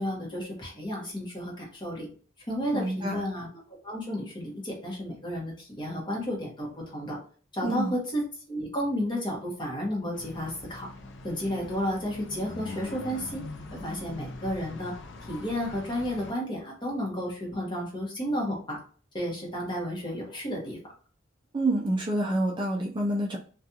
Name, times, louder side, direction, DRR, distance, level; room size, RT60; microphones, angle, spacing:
voice 1, 0.0-2.1 2.5-7.2 7.5-10.9 11.2-13.4 13.7-14.9 15.3-18.8 19.1-20.8, equal, 25° left, -2 dB, 1.0 m, -32 dB
voice 2, 2.7-3.2 7.6-7.9 21.5-23.4, right 1 dB, 25° right, -1 dB, 0.4 m, -27 dB
sound 1, 10.1-16.3, left 2 dB, 60° left, 0.4 m, -42 dB
2.5 x 2.3 x 2.7 m, 0.41 s
head